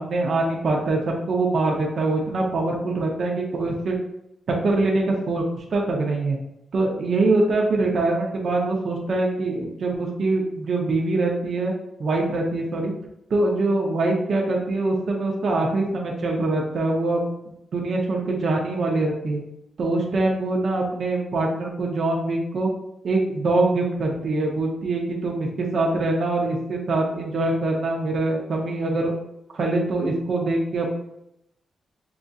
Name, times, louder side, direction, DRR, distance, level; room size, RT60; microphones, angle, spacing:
voice 1, 0.0-4.0 4.6-6.4 6.7-11.7 12.0-12.9 13.3-17.3 17.7-19.4 19.8-22.7 23.0-29.1 29.5-30.9, right 2 dB, 65° right, 0 dB, 0.7 m, -23 dB
5.8 x 2.6 x 2.4 m, 0.82 s
cardioid pair, 75°, 0 cm